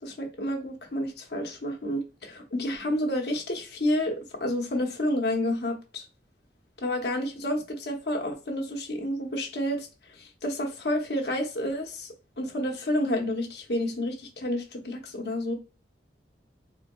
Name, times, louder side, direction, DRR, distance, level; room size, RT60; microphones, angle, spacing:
voice 1, 0.0-6.0 6.8-9.9 10.2-15.5, left 1 dB, 65° left, 0.9 m, -30 dB
4.2 x 2.7 x 2.3 m
head